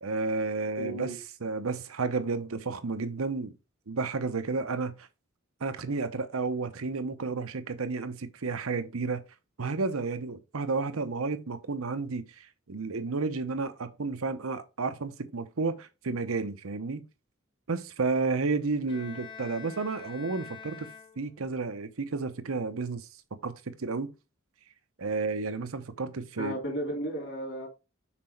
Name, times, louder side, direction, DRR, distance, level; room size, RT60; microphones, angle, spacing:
voice 1, 0.0-3.5 3.9-5.1 5.6-9.2 9.6-17.0 17.7-20.9 21.2-23.1 23.4-24.1 25.0-26.5, right 4 dB, 90° right, 0.8 m, -32 dB
voice 2, 0.8-1.2 26.4-27.7, right 1 dB, 60° left, 2.9 m, -34 dB
Bowed string instrument, 18.9-21.6, left 7 dB, 20° left, 0.9 m, -46 dB
5.9 x 4.3 x 4.4 m
head